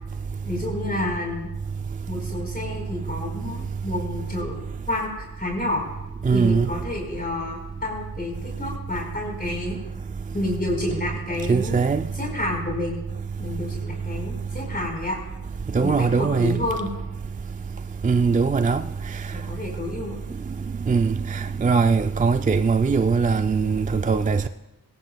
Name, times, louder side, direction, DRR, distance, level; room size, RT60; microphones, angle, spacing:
voice 1, 0.4-1.5 2.1-5.8 6.3-9.8 10.3-11.8 12.2-13.0 13.4-15.2 15.8-16.9 19.5-20.2, left 2 dB, 25° left, 4.5 m, -29 dB
voice 2, 6.3-6.7 11.5-12.0 15.7-16.6 18.0-18.8 20.9-24.5, right 5 dB, 25° right, 0.4 m, -21 dB
22.0 x 18.0 x 2.3 m
wide cardioid pair, 100°, 36 cm